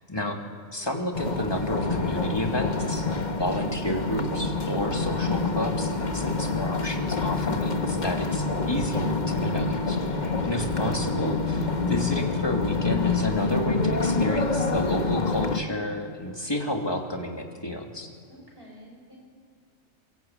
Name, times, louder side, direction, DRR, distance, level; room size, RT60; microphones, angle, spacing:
voice 1, 0.7-3.1 3.4-10.0 10.4-18.1, left 1 dB, 20° left, 2 dB, 2.7 m, -31 dB
sound 1, 1.1-15.6, left 3 dB, 35° left, 1.4 m, -27 dB
voice 2, 10.1-10.4 18.3-19.2, equal, 45° right, -1 dB, 7.1 m, -49 dB
23.0 x 22.0 x 9.1 m, 2.3 s
omnidirectional pair, 1.4 m